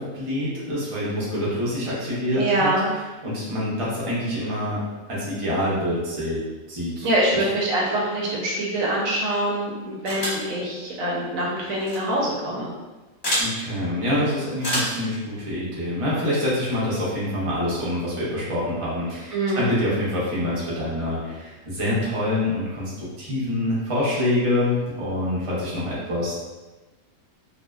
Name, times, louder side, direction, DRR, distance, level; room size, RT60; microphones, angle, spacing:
voice 1, 0.0-2.7 3.2-4.8 5.1-6.4 6.7-7.4 13.4-26.3, left 1 dB, 40° right, -7 dB, 0.4 m, -26 dB
voice 2, 2.4-2.9 7.0-12.7 19.3-19.8, right 1 dB, 75° right, -4 dB, 1.0 m, -24 dB
sound 1, 10.1-10.5 11.8-12.0 13.2-13.5 14.6-15.0, equal, 40° left, 0.9 m, -26 dB
2.6 x 2.1 x 2.2 m, 1.2 s
omnidirectional pair, 1.5 m